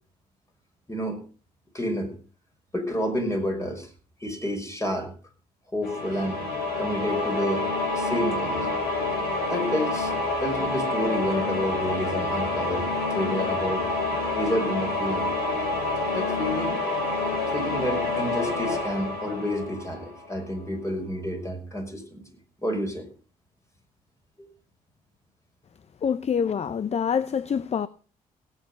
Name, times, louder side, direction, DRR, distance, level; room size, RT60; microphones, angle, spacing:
voice 1, 1.7-2.1 2.7-3.9 4.2-5.1 5.7-6.4 6.8-8.7 9.5-10.1 10.4-13.9 14.3-15.3 16.1-16.8 17.5-22.2 22.6-23.1 24.4-24.5, equal, 20° left, 5.7 m, -29 dB
sound 1, 5.8-20.4, left 2 dB, 85° left, 6.3 m, -28 dB
voice 2, 26.0-27.9, left 7 dB, 40° left, 0.6 m, -26 dB
17.5 x 9.1 x 5.4 m
supercardioid pair, 65°, 16 cm